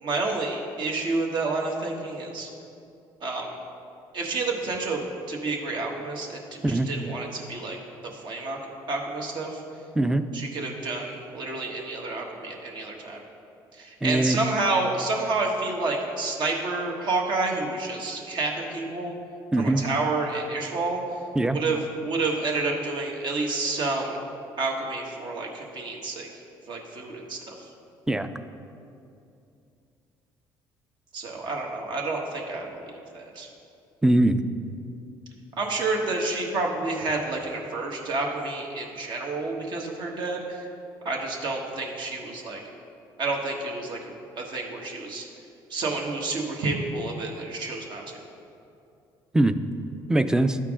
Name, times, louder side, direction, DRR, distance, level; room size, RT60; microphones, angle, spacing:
voice 1, 0.0-2.5 3.2-3.6 4.1-6.4 6.7-7.8 8.0-8.6 8.9-9.6 10.3-13.2 13.8-19.1 19.6-21.0 21.5-24.2 24.6-26.3 26.7-27.5 31.1-33.5 35.6-40.7 41.0-42.6 43.2-44.0 44.4-45.2 45.7-48.2, right 3 dB, 60° right, 0 dB, 1.3 m, -29 dB
voice 2, 10.0-10.3 14.0-14.4 19.5-19.9 21.4-21.6 28.1-28.3 34.0-34.4 49.3-49.6 50.1-50.6, right 1 dB, 10° right, 10 dB, 0.4 m, -21 dB
12.0 x 4.5 x 3.6 m, 2.6 s
supercardioid pair, 85°, 9 cm